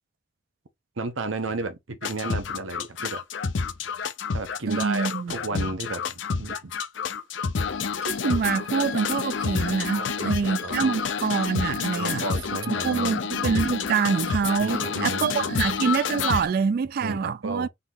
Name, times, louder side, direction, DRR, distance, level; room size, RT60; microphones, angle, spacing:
voice 1, 1.0-3.2 4.3-6.7 9.9-10.9 11.9-13.1 14.6-15.7 17.0-17.7, right 3 dB, 85° right, 0.9 m, -33 dB
sound 1, 2.0-16.5, left 5 dB, 70° left, 0.5 m, -29 dB
voice 2, 4.7-5.7 8.0-12.2 12.7-17.7, right 6 dB, 50° right, 0.3 m, -26 dB
4.0 x 2.9 x 3.7 m
head